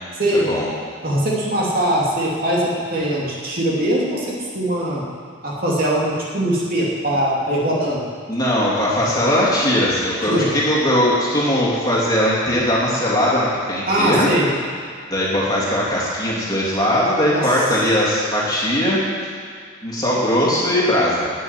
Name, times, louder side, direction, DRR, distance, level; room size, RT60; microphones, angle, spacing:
voice 1, 0.3-0.7 8.3-14.3 15.1-19.0 19.8-21.3, equal, 20° left, -6 dB, 3.0 m, -19 dB
voice 2, 1.0-5.0 5.4-8.0 10.3-10.5 13.9-14.5 17.3-17.4, right 1 dB, 45° right, -5 dB, 2.9 m, -21 dB
12.5 x 8.8 x 9.0 m, 2.2 s
head